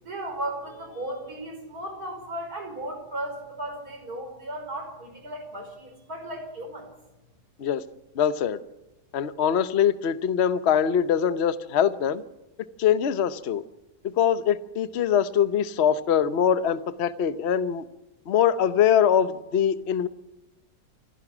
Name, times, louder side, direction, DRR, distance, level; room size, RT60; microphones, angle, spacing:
voice 1, 0.0-6.9, right 1 dB, 65° right, 5.7 m, -35 dB
voice 2, 8.2-8.6 9.1-12.2 12.8-13.6 14.0-17.8 18.3-20.1, left 8 dB, 50° left, 1.0 m, -23 dB
28.0 x 11.0 x 9.9 m
omnidirectional pair, 1.7 m